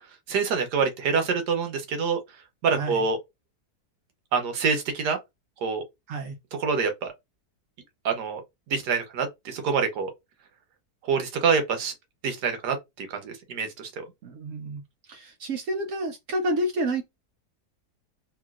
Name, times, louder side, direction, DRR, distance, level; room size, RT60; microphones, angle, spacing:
voice 1, 0.3-2.2 2.6-3.2 4.3-5.2 5.6-5.8 6.6-7.1 8.0-8.4 8.7-10.1 11.1-11.9 12.2-14.0, right 5 dB, 90° right, 1.4 m, -26 dB
voice 2, 14.2-14.8 15.1-17.0, right 1 dB, 65° right, 0.9 m, -29 dB
2.9 x 2.9 x 2.3 m
omnidirectional pair, 1.7 m